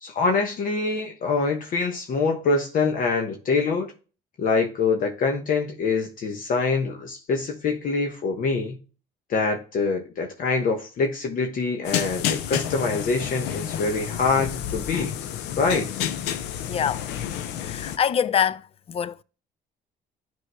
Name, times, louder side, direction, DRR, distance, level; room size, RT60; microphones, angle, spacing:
voice 1, 0.0-3.9 4.4-8.8 9.3-15.1 15.6-15.9, left 4 dB, 55° left, 1.0 m, -25 dB
sound 1, 11.8-18.0, left 10 dB, 90° left, 0.6 m, -30 dB
voice 2, 16.7-17.0 17.6-19.2, left 8 dB, 35° left, 0.4 m, -25 dB
11.0 x 4.7 x 2.2 m
cardioid pair, 110°, 17 cm